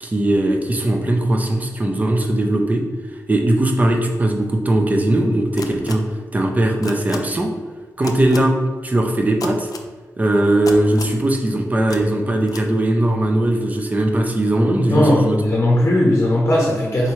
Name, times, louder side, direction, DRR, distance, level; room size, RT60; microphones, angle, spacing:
voice 1, 0.0-2.8 3.3-6.0 6.3-7.5 8.0-8.6 8.8-9.7 10.2-15.4, right 1 dB, 25° right, 2 dB, 0.5 m, -19 dB
sound 1, 5.6-5.9 6.8-7.2 8.0-8.4 9.4-9.8 10.6-11.2 11.9-12.0 12.5-12.6, left 5 dB, 75° left, 0.4 m, -32 dB
voice 2, 14.8-17.1, left 1 dB, 40° left, -3 dB, 0.8 m, -17 dB
4.3 x 3.5 x 3.1 m, 1.4 s
wide cardioid pair, 140°, 6 cm